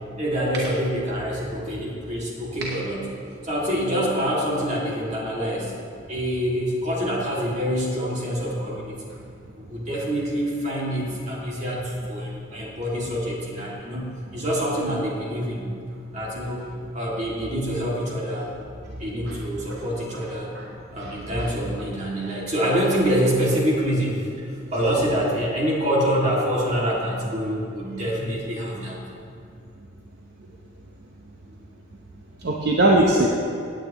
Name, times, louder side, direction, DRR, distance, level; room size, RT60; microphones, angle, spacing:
voice 1, 0.2-3.0 3.4-5.7 6.1-9.0 9.6-15.7 16.1-18.5 19.0-20.5 20.9-24.3 24.7-29.0, equal, 40° right, -4 dB, 2.3 m, -26 dB
voice 2, 21.0-21.5 32.4-33.3, right 1 dB, 55° right, -2 dB, 0.9 m, -20 dB
17.0 x 9.0 x 3.0 m, 2.4 s
head